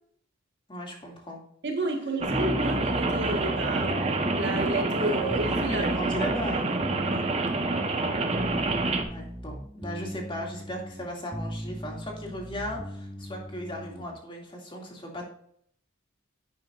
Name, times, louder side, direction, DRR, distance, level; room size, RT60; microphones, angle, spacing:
voice 1, 0.7-1.4 5.6-6.8 9.1-15.3, equal, 25° left, 0 dB, 2.4 m, -37 dB
voice 2, 1.6-3.9 4.3-5.8 7.1-7.2, right 2 dB, 60° right, 3 dB, 1.8 m, -31 dB
Rain, 2.2-9.0, right 2 dB, 30° right, 1.0 m, -27 dB
sound 1, 2.3-14.2, equal, 5° right, 0.5 m, -38 dB
11.0 x 9.1 x 2.5 m, 0.65 s
head